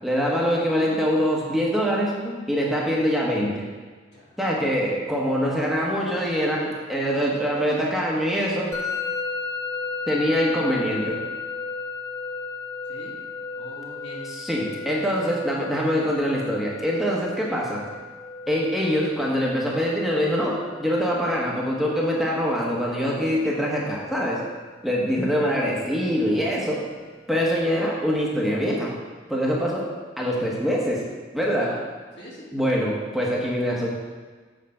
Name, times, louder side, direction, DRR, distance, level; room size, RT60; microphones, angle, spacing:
voice 1, 0.0-3.6 4.4-8.7 10.1-11.1 14.2-17.8 18.5-24.4 24.8-26.8 27.3-28.9 29.3-29.9 30.2-31.0 31.3-31.7 32.5-33.9, equal, ahead, -4 dB, 1.1 m, -24 dB
Musical instrument, 8.7-27.6, left 4 dB, 20° left, 0.8 m, -36 dB
voice 2, 13.5-14.3 15.1-15.3 31.6-31.8 32.2-32.5, left 1 dB, 70° left, -7 dB, 2.7 m, -42 dB
7.6 x 4.9 x 5.7 m, 1.4 s
head